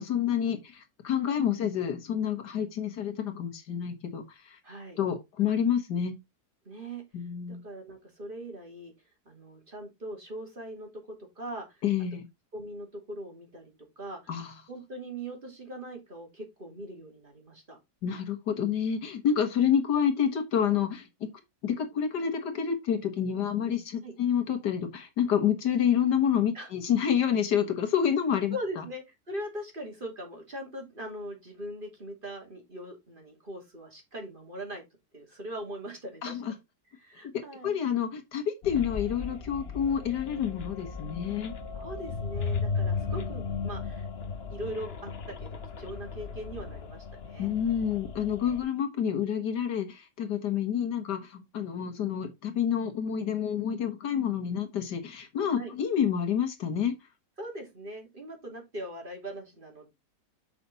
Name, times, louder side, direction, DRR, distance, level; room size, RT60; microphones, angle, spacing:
voice 1, 0.0-4.6 5.0-6.2 7.1-7.6 11.8-12.2 14.3-14.5 18.0-21.3 21.6-28.8 36.2-36.5 37.6-41.5 47.4-56.9, left 8 dB, 90° left, 2.1 m, -28 dB
voice 2, 4.6-5.0 6.6-7.0 7.5-8.9 9.3-10.9 11.4-11.8 12.5-14.2 14.7-17.8 24.0-24.1 26.5-26.7 28.5-34.8 35.1-36.4 37.0-37.8 41.7-44.1 44.5-45.1 45.4-47.5 55.6-55.7 57.4-59.9, right 1 dB, 30° right, 2.9 m, -40 dB
sound 1, 38.6-48.6, left 5 dB, 45° left, 1.0 m, -36 dB
7.0 x 6.0 x 4.0 m
omnidirectional pair, 1.7 m